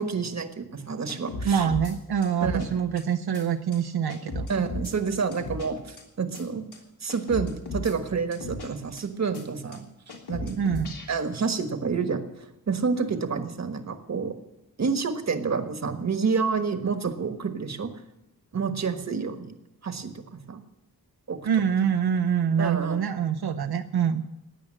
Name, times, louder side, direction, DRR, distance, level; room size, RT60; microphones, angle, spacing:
voice 1, 0.0-1.7 2.4-2.7 4.5-6.6 7.0-9.8 10.3-10.6 11.1-12.2 12.7-14.3 14.8-17.9 18.5-19.5 19.8-20.6 21.3-21.4 22.6-23.0, right 5 dB, 45° right, 7 dB, 1.4 m, -28 dB
sound 1, 1.1-1.9 2.2-2.7 3.0-3.1 3.3-3.4 3.7-3.8 4.1-4.9 5.3-5.7 6.0-6.1 6.3-6.4 6.7-6.8 7.1-7.9 8.3-8.7 9.0-9.1 9.3-9.4 9.7-9.8 10.1-11.1, left 2 dB, 80° left, 3.5 m, -35 dB
voice 2, 1.4-4.5 10.6-10.9 21.4-24.2, right 7 dB, 75° right, 6 dB, 0.8 m, -25 dB
16.5 x 10.5 x 7.6 m, 0.90 s
wide cardioid pair, 170°, 38 cm